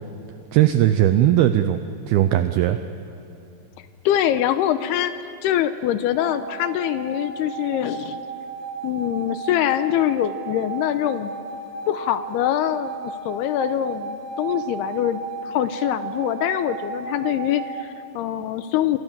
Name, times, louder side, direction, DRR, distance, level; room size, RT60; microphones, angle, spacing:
voice 1, 0.5-1.8 2.1-2.8, right 12 dB, 85° right, 9 dB, 2.2 m, -18 dB
voice 2, 4.1-5.1 5.4-8.2 8.8-11.3 11.9-19.0, left 11 dB, 80° left, 11 dB, 2.4 m, -24 dB
sound 1, 6.2-17.8, right 5 dB, 60° right, 3.4 m, -34 dB
28.0 x 24.0 x 7.4 m, 2.9 s
omnidirectional pair, 5.3 m